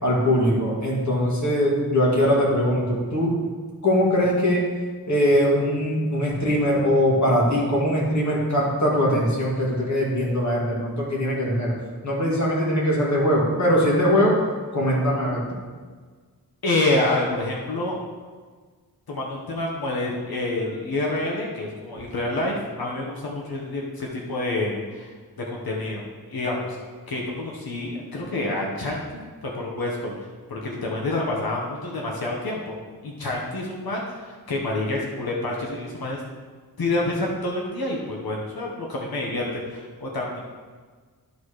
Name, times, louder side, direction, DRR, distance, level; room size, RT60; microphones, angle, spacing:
voice 1, 0.0-3.4 3.8-4.6 5.1-11.7 12.0-14.4 14.7-15.4, equal, 50° left, -5 dB, 2.4 m, -21 dB
voice 2, 16.6-18.0 19.1-25.1 25.4-26.8 27.1-30.1 30.5-32.7 33.0-36.2 36.8-40.4, left 2 dB, 70° left, -2 dB, 1.3 m, -28 dB
11.0 x 4.2 x 4.9 m, 1.5 s
wide cardioid pair, 140°, 37 cm